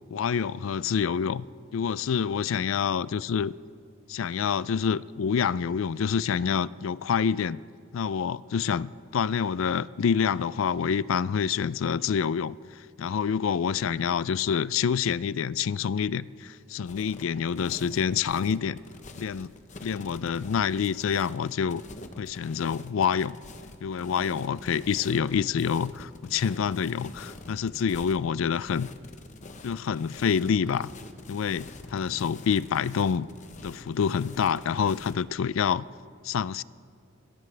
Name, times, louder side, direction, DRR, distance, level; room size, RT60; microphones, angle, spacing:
voice 1, 0.1-1.5 1.7-3.5 4.1-7.6 7.9-18.8 19.2-19.5 19.8-21.8 22.2-23.4 23.8-28.9 29.6-30.9 31.3-33.3 33.6-35.9 36.2-36.6, left 7 dB, 75° left, 0.4 m, -27 dB
sound 1, 16.8-35.2, left 2 dB, 35° left, 0.9 m, -46 dB
26.0 x 15.5 x 3.4 m
head